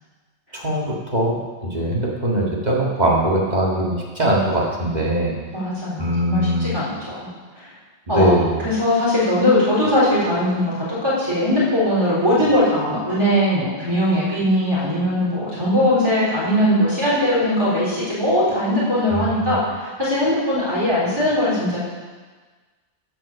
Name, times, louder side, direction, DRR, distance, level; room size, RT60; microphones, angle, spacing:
voice 1, 0.5-5.4 6.0-6.8 8.1-8.7 19.1-19.6, right 1 dB, 40° right, -3 dB, 1.9 m, -21 dB
voice 2, 5.5-7.3 7.6-7.7 8.1-8.3 8.6-21.8, left 1 dB, 20° right, -9 dB, 3.9 m, -20 dB
15.0 x 5.2 x 6.7 m, 1.4 s
omnidirectional pair, 1.2 m